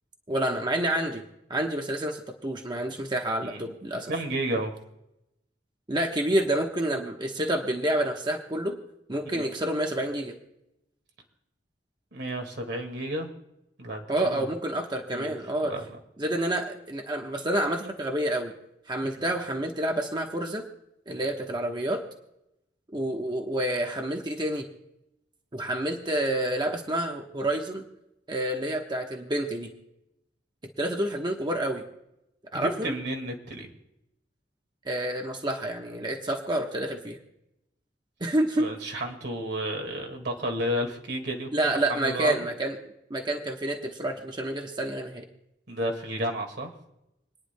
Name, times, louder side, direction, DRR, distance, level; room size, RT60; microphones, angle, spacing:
voice 1, 0.3-1.2 1.5-4.1 5.9-8.8 9.1-10.3 14.1-15.7 16.2-18.5 18.9-20.6 21.1-22.0 22.9-24.7 25.5-27.8 28.3-29.7 30.8-31.8 32.5-32.9 34.8-37.2 38.2-38.7 41.5-42.8 43.1-45.2, right 1 dB, 25° right, 2 dB, 1.1 m, -28 dB
voice 2, 3.4-3.8 4.1-4.8 9.3-9.4 12.1-13.3 13.8-14.5 15.1-15.4 15.6-16.0 32.5-33.7 38.6-42.5 45.7-46.7, right 1 dB, 65° right, 4 dB, 1.9 m, -32 dB
28.5 x 9.9 x 2.2 m, 0.87 s
head